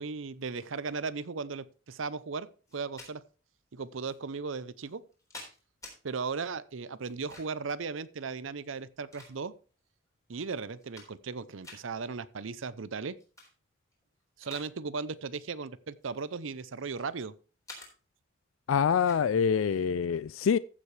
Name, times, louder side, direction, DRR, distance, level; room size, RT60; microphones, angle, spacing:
voice 1, 0.0-2.5 2.7-3.2 3.7-5.0 6.0-9.5 10.3-13.2 14.4-17.3, right 4 dB, 80° right, 0.6 m, -36 dB
sound 1, 2.7-3.1 4.0-4.2 4.9-6.0 7.0-7.7 8.6-9.7 10.3-10.4 10.7-11.3 11.6-11.8 13.2-13.5 13.9-14.7 15.0-15.3 16.0-17.1 17.7-17.9 19.0-19.2, left 2 dB, 15° left, 3.6 m, -49 dB
voice 2, 18.7-20.6, left 7 dB, 85° left, 0.4 m, -25 dB
15.0 x 7.4 x 3.3 m
head